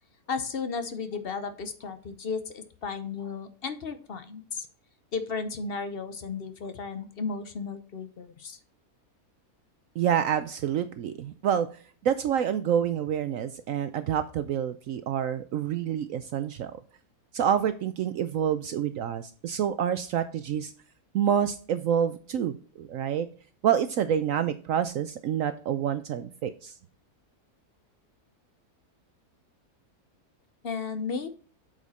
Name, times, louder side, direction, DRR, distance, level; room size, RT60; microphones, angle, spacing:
voice 1, 0.3-4.7 5.1-8.6 30.6-31.3, left 5 dB, 45° left, 10 dB, 0.8 m, -34 dB
voice 2, 10.0-11.7 12.0-16.8 17.3-20.7 21.1-23.3 23.6-26.7, right 9 dB, 70° right, 11 dB, 0.9 m, -27 dB
8.3 x 5.1 x 4.1 m, 0.40 s
omnidirectional pair, 1.6 m